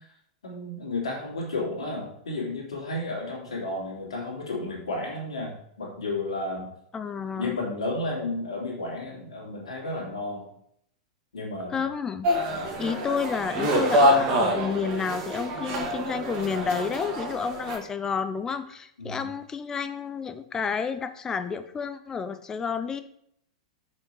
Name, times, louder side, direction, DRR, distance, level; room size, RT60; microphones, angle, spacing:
voice 1, 0.4-6.7 7.4-10.5 11.3-11.8 12.5-12.7 19.0-19.2, left 2 dB, 65° left, -3 dB, 2.8 m, -32 dB
voice 2, 6.9-7.6 11.7-12.3 12.8-23.0, left 6 dB, 15° left, 11 dB, 0.6 m, -30 dB
sound 1, 12.2-17.8, equal, 40° right, 1.9 m, -26 dB
6.8 x 5.4 x 4.8 m, 0.70 s
figure-of-eight pair, 95°, 3 cm